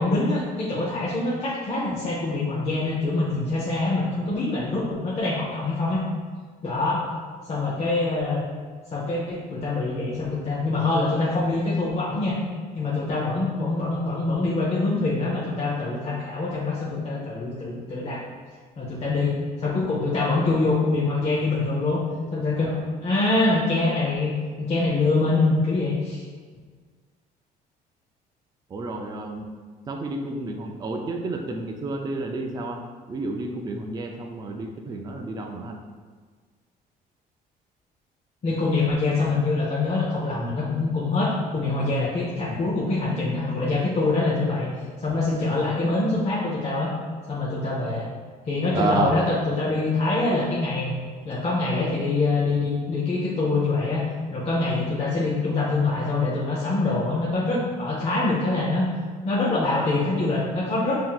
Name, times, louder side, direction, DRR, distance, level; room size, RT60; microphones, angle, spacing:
voice 1, 0.0-6.0 6.6-7.0 7.5-8.4 8.9-12.4 12.7-18.2 18.8-22.0 22.3-22.7 23.0-26.2 38.4-44.7 45.0-46.9 47.3-48.0 48.5-50.9 51.2-54.0 54.3-58.9 59.2-61.0, left 3 dB, 40° left, -6 dB, 0.7 m, -24 dB
voice 2, 28.7-29.5 29.9-32.8 33.1-35.8 48.7-49.1, right 2 dB, 25° right, 2 dB, 0.4 m, -30 dB
5.6 x 2.7 x 2.3 m, 1.5 s
cardioid pair, 110°, 17 cm